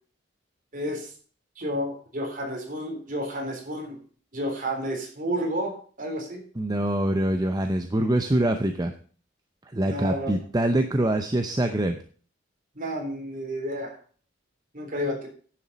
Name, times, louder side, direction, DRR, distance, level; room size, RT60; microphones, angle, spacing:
voice 1, 0.7-1.1 1.6-4.0 4.3-6.4 9.8-10.3 12.8-14.0 14.7-15.3, equal, 45° right, 2 dB, 3.7 m, -31 dB
voice 2, 6.5-8.9 9.7-12.0, right 1 dB, 20° right, 6 dB, 0.7 m, -24 dB
10.5 x 7.1 x 5.3 m, 0.43 s
head